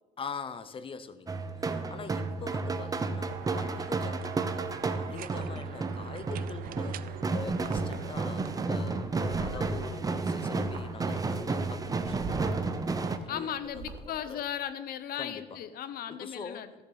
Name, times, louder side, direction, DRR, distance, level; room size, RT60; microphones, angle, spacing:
voice 1, 0.2-14.4 15.2-15.6 16.1-16.7, left 5 dB, 30° left, 12 dB, 0.7 m, -44 dB
sound 1, 1.3-13.2, right 3 dB, 20° right, 0.7 m, -32 dB
sound 2, 3.3-8.7, right 12 dB, 55° right, 0.4 m, -45 dB
sound 3, 7.6-8.0 8.5-8.7 9.0-10.2 10.4-14.1, right 5 dB, 75° right, 1.6 m, -43 dB
voice 2, 13.3-16.7, left 10 dB, 65° left, 13 dB, 0.8 m, -36 dB
15.0 x 7.0 x 4.0 m, 1.3 s
cardioid pair, 110°, 17 cm